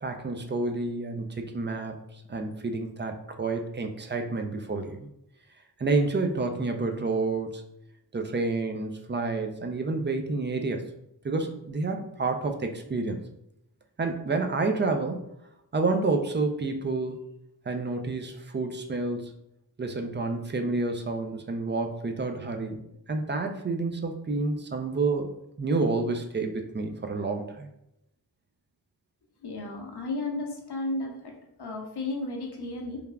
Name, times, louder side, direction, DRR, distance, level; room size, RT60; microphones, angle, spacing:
voice 1, 0.0-2.0 2.3-5.1 5.8-7.6 8.1-10.9 11.2-13.3 14.0-15.2 15.7-17.2 17.7-19.3 19.8-22.8 23.1-25.3 25.6-27.7, right 3 dB, 30° right, 5 dB, 0.4 m, -29 dB
voice 2, 29.4-31.3 31.6-33.0, left 2 dB, 70° left, 0 dB, 0.8 m, -33 dB
3.3 x 2.3 x 2.2 m, 0.81 s
cardioid pair, 45°, 42 cm